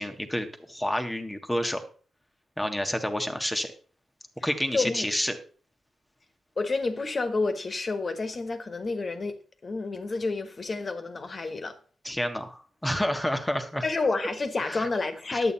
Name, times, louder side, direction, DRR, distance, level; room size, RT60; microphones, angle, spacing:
voice 1, 0.0-1.8 2.6-3.7 4.4-5.4 12.0-13.8 14.6-14.9 15.3-15.5, equal, 10° left, 1.6 m, -29 dB
voice 2, 4.7-5.1 6.6-9.3 9.6-11.8 13.8-15.5, left 3 dB, 40° left, 1.7 m, -29 dB
11.0 x 8.4 x 4.2 m
cardioid pair, 95°, 0 cm